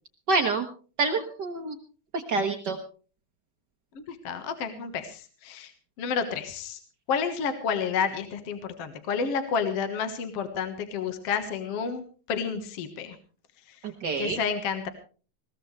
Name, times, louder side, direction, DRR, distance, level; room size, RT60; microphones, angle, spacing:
voice 1, 0.3-0.6 1.0-1.8 2.1-2.8 13.8-14.4, right 3 dB, 65° right, 4 dB, 1.0 m, -27 dB
voice 2, 4.0-5.7 6.0-6.8 7.1-13.2 13.7-13.8 14.2-14.9, left 6 dB, 55° left, 8 dB, 2.2 m, -30 dB
21.0 x 17.0 x 3.3 m, 0.38 s
omnidirectional pair, 3.8 m